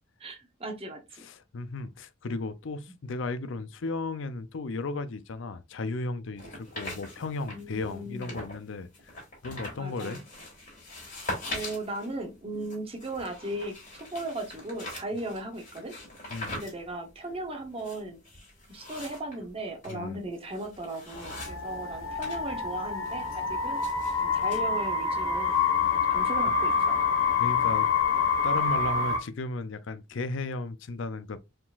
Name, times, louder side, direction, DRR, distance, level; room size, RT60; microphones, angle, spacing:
voice 1, 0.2-1.2 7.5-8.3 9.7-10.2 11.2-15.9 16.5-18.2 18.7-23.8 24.2-25.5 25.8-27.0, right 1 dB, 30° right, 0.8 m, -37 dB
voice 2, 1.2-8.9 9.4-10.2 16.3-16.6 19.9-20.2 25.5-26.0 27.4-27.9 28.4-31.4, left 3 dB, 65° left, 0.5 m, -35 dB
sound 1, 6.4-8.6 8.9-22.4 22.7-24.6, left 2 dB, 40° left, 2.5 m, -42 dB
sound 2, 21.1-29.2, left 5 dB, 80° left, 1.0 m, -27 dB
4.7 x 3.7 x 2.4 m
head